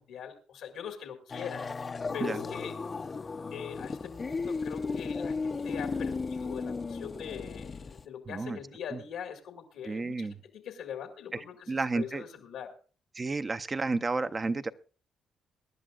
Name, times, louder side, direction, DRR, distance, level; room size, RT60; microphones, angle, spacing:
voice 1, 0.0-1.7 2.1-2.8 3.5-12.7, left 8 dB, 85° left, 4 dB, 1.9 m, -42 dB
sound 1, 1.3-8.0, left 4 dB, 35° left, 0.6 m, -35 dB
voice 2, 8.3-8.6 8.9-9.0 9.8-10.4 11.3-11.4 11.7-12.2 13.2-14.7, right 3 dB, 30° right, 11 dB, 0.6 m, -31 dB
23.0 x 11.0 x 2.4 m, 0.37 s
cardioid pair, 90°, 0 cm